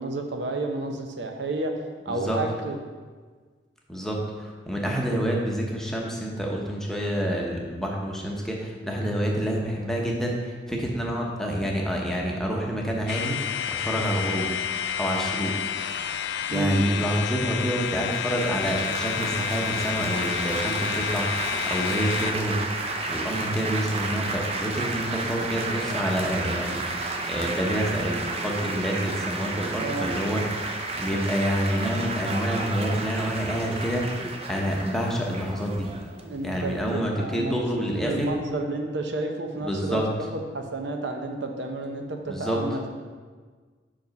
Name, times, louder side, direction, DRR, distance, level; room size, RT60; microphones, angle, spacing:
voice 1, 0.0-1.8 2.0-2.8 16.5-16.8 29.8-30.2 36.2-40.0 40.5-42.9, right 2 dB, 70° right, 4 dB, 0.7 m, -31 dB
voice 2, 2.1-2.4 3.9-13.4 13.7-14.5 15.0-15.5 16.5-22.6 23.1-34.1 34.5-35.9 36.4-38.3 39.6-40.1 42.3-42.6, equal, 5° left, -2 dB, 0.9 m, -28 dB
sound 1, 13.1-22.3, left 9 dB, 65° left, 0.3 m, -30 dB
Laughter / Applause / Chatter, 17.9-37.0, right 2 dB, 35° right, 0.6 m, -32 dB
5.4 x 5.1 x 5.2 m, 1.5 s
head